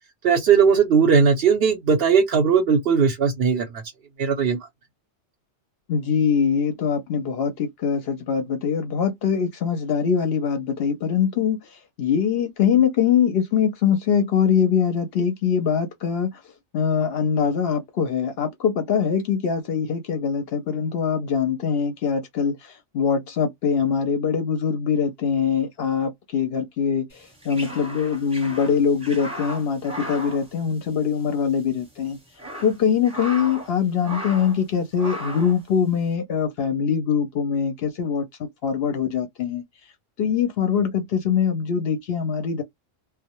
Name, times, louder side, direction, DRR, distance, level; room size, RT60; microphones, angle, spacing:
voice 1, 0.2-3.8 4.2-4.6, right 6 dB, 60° right, 0.7 m, -18 dB
voice 2, 5.9-16.4 16.7-32.2 32.6-39.6 40.2-42.6, left 7 dB, 65° left, 0.7 m, -23 dB
sound 1, 27.2-31.3 31.5-31.6 32.2-33.7 34.0-34.6 35.0-35.6, right 1 dB, 5° right, 0.7 m, -36 dB
2.1 x 2.0 x 2.8 m
omnidirectional pair, 1.3 m